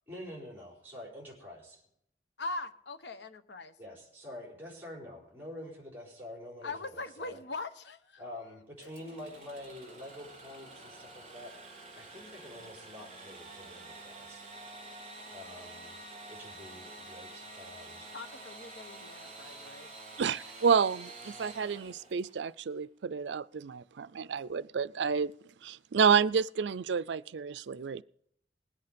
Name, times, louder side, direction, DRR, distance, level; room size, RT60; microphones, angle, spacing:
voice 1, 0.1-1.8 3.8-7.4 8.2-14.5 15.3-15.9 16.3-18.1, left 1 dB, 10° right, 4.6 m, -47 dB
voice 2, 2.4-3.7 6.6-8.2 8.8-8.9 18.1-19.9, left 3 dB, 70° left, 1.1 m, -41 dB
Engine / Sawing, 8.8-22.5, right 2 dB, 40° right, 4.9 m, -48 dB
voice 3, 20.2-25.3 25.6-28.0, right 6 dB, 75° right, 0.4 m, -29 dB
20.0 x 8.2 x 5.2 m
head